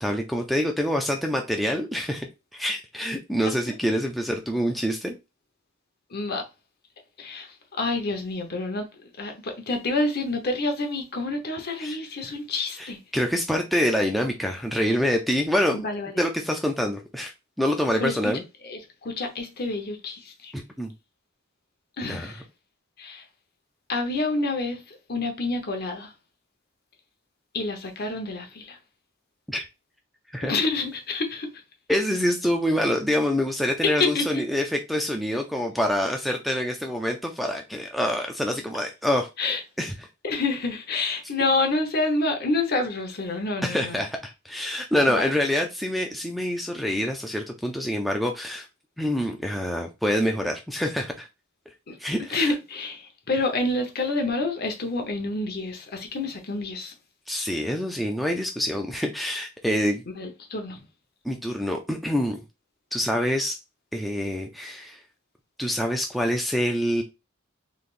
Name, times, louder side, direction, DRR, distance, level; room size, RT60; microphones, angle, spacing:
voice 1, 0.0-5.2 11.8-12.0 12.8-15.8 16.1-17.3 17.6-18.4 20.5-20.9 22.1-22.3 29.5-29.7 30.3-30.5 31.9-39.3 39.8-39.9 43.6-48.7 49.0-51.3 52.0-52.5 57.3-60.0 61.2-62.4 62.9-63.6 63.9-65.0 65.6-67.0, equal, ahead, 0.4 m, -26 dB
voice 2, 6.1-6.4 7.2-8.9 9.2-13.0 15.7-16.1 18.0-18.3 18.6-20.5 22.0-22.4 23.0-23.2 23.9-26.1 27.5-28.8 30.4-31.5 33.8-34.4 39.4-39.6 40.2-44.0 45.1-45.3 51.9-52.0 52.3-56.9 60.1-60.8, left 3 dB, 50° left, 1.0 m, -28 dB
3.9 x 3.3 x 2.5 m
head